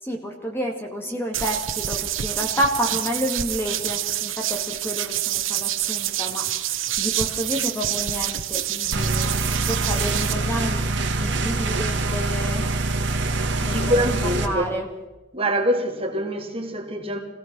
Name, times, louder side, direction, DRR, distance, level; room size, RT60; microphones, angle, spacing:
voice 1, 0.0-10.9 11.2-12.6 13.6-14.9, equal, 10° left, 2.1 m, -30 dB
sound 1, 1.3-10.3, right 12 dB, 85° right, 1.2 m, -27 dB
sound 2, 8.9-14.5, right 2 dB, 65° right, 2.2 m, -24 dB
voice 2, 13.7-14.7 15.3-17.2, equal, 30° right, 2.7 m, -24 dB
25.0 x 17.0 x 6.2 m
head